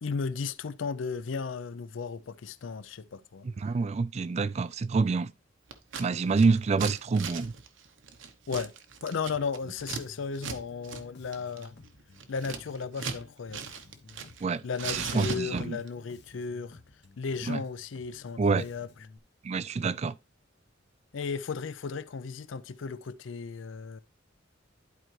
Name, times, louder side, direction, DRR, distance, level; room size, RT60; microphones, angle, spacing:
voice 1, 0.0-3.5 8.5-8.7 9.0-11.7 12.3-13.6 14.6-16.8 17.2-18.9 21.1-24.0, left 5 dB, 75° left, 0.5 m, -35 dB
voice 2, 3.6-5.3 6.0-7.5 14.4-14.6 14.9-15.8 17.5-17.6 18.4-18.6 19.4-20.1, right 4 dB, 35° right, 0.3 m, -27 dB
Scissors, 5.7-6.1 6.3-10.0 10.4-10.6 10.8-11.0 11.3-13.2 13.5-14.4 14.7-15.9, right 5 dB, 75° right, 0.9 m, -38 dB
Bass guitar, 9.3-19.2, left 3 dB, 55° left, 0.9 m, -54 dB
11.0 x 4.5 x 3.1 m
head